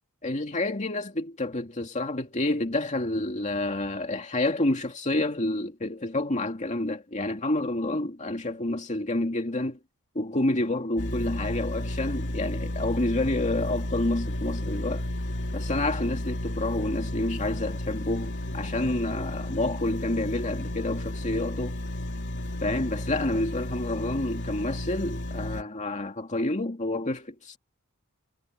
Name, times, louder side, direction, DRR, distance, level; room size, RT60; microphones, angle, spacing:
voice 1, 0.2-9.8 10.1-15.1 15.5-21.8 22.6-27.6, left 2 dB, 35° left, 2.4 m, -29 dB
sound 1, 11.0-25.6, left 1 dB, 55° left, 3.2 m, -33 dB
head